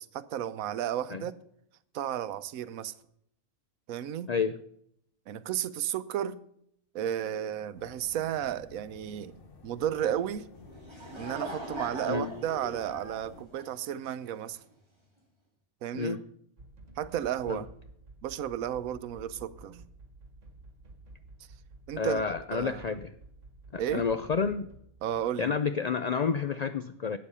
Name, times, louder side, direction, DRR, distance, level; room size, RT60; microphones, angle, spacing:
voice 1, 0.0-1.3 1.9-2.9 3.9-4.3 5.3-6.4 6.9-9.4 9.6-10.5 11.2-14.6 15.8-16.2 17.0-17.7 18.2-19.8 21.9-22.2 22.5-23.0 23.8-24.0 25.0-25.5, right 10 dB, 90° right, 1.1 m, -33 dB
sound 1, 7.8-13.5, left 3 dB, 45° left, 1.2 m, -52 dB
Laughter / Crowd, 10.6-14.4, right 1 dB, 20° right, 2.4 m, -41 dB
sound 2, 16.6-25.3, right 2 dB, 65° right, 2.1 m, -52 dB
voice 2, 22.0-23.1 23.7-24.7 25.4-27.2, left 5 dB, 85° left, 0.3 m, -29 dB
12.0 x 8.4 x 5.5 m
omnidirectional pair, 1.4 m